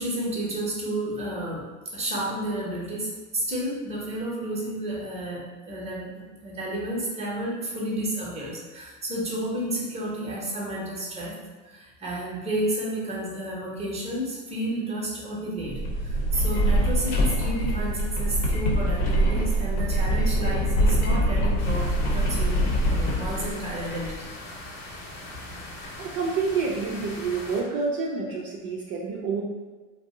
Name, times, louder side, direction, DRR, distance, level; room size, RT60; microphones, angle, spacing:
voice 1, 0.0-1.6 1.9-11.3 11.6-24.1, right 1 dB, 15° right, -5 dB, 0.9 m, -31 dB
sound 1, 15.6-24.1, right 1 dB, 80° left, 0.7 m, -24 dB
sound 2, 21.6-27.6, left 1 dB, 50° left, 1.0 m, -40 dB
voice 2, 26.0-29.4, right 4 dB, 55° right, -3 dB, 0.5 m, -28 dB
2.6 x 2.0 x 3.5 m, 1.3 s
hypercardioid pair, 95°, 41 cm